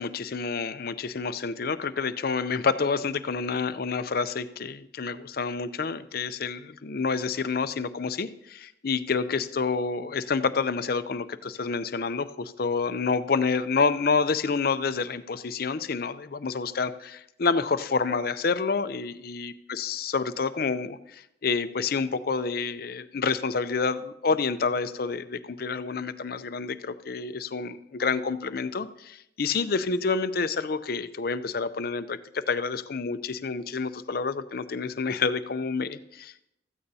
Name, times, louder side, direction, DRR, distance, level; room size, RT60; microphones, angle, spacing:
voice 1, 0.0-36.5, left 4 dB, 50° left, 13 dB, 0.5 m, -28 dB
15.5 x 14.0 x 2.8 m, 0.80 s
head